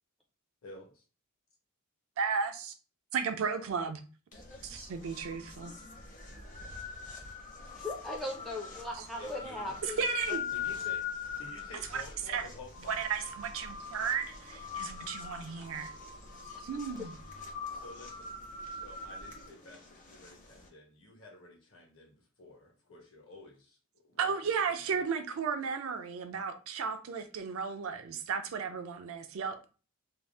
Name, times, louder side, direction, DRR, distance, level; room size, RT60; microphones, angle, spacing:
voice 1, 0.6-1.0 9.2-9.8 10.5-11.0 11.4-13.0 17.8-18.3 18.7-25.1, left 2 dB, 65° left, 1.0 m, -51 dB
voice 2, 2.2-2.7 3.1-4.0 4.6-5.7 9.0-9.1 9.8-10.4 11.9-12.0 12.3-12.5 12.9-15.9 16.6-17.2 24.2-29.6, right 6 dB, 65° right, 0.4 m, -34 dB
sound 1, 4.3-20.7, left 6 dB, 35° left, 0.7 m, -42 dB
voice 3, 7.8-10.0 10.3-10.4, left 1 dB, ahead, 0.4 m, -38 dB
2.6 x 2.0 x 3.2 m
head